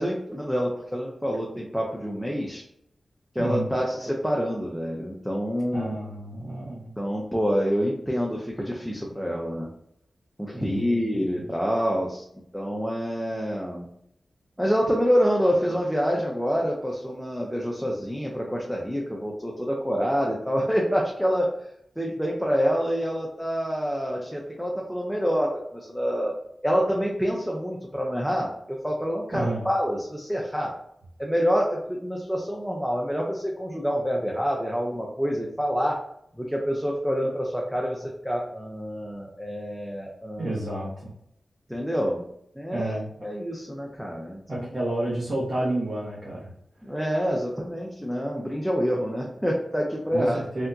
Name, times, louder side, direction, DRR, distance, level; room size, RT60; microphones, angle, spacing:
voice 1, 0.0-2.6 3.3-6.0 7.0-9.7 10.4-12.3 12.5-13.9 14.6-21.7 22.0-26.3 26.6-30.7 31.2-36.0 36.3-40.6 41.7-42.3 42.5-44.7 46.8-50.4, equal, ahead, -2 dB, 0.7 m, -27 dB
voice 2, 5.7-6.9 10.5-11.0 11.4-11.5 29.3-29.7 40.4-41.1 42.7-43.1 44.5-46.5 50.1-50.7, right 1 dB, 45° right, -7 dB, 1.1 m, -30 dB
3.4 x 2.7 x 2.3 m, 0.74 s
cardioid pair, 40°, 0 cm